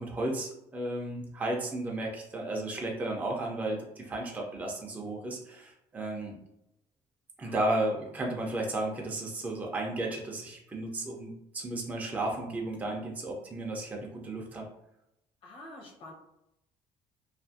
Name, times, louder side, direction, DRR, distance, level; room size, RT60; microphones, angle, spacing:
voice 1, 0.0-6.4 7.4-14.7, right 1 dB, 15° right, -1 dB, 0.4 m, -34 dB
voice 2, 15.4-16.1, left 1 dB, 50° left, -1 dB, 0.8 m, -47 dB
2.6 x 2.4 x 2.5 m, 0.83 s
cardioid pair, 145°, 12 cm